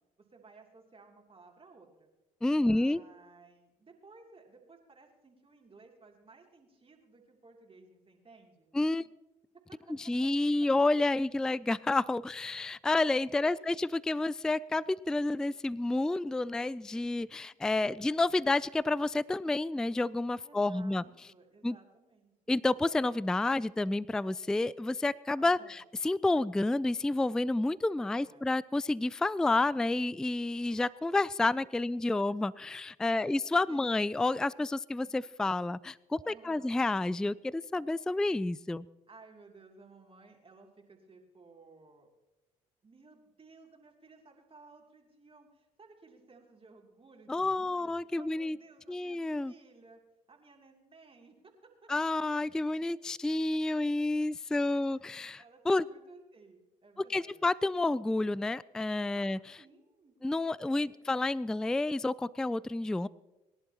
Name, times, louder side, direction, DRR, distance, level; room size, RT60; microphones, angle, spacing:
voice 1, 0.2-2.1 2.5-8.7 9.7-9.8 13.4-13.8 17.4-17.5 17.8-18.1 20.4-22.5 25.4-25.8 28.0-28.5 29.2-29.3 31.7-31.9 33.0-33.4 33.7-34.0 36.2-36.7 39.1-42.1 42.8-50.0 50.3-51.9 54.7-55.0 55.4-57.4 59.1-59.3 59.6-61.4, right 3 dB, 30° right, 1 dB, 2.9 m, -57 dB
voice 2, 2.4-3.0 8.7-9.1 10.0-21.0 21.6-21.8 22.5-38.8 47.3-48.6 48.9-49.5 51.9-55.9 57.0-59.4 60.2-63.1, left 2 dB, 5° left, 21 dB, 0.3 m, -30 dB
22.5 x 11.0 x 2.9 m, 1.0 s
hypercardioid pair, 55°, 17 cm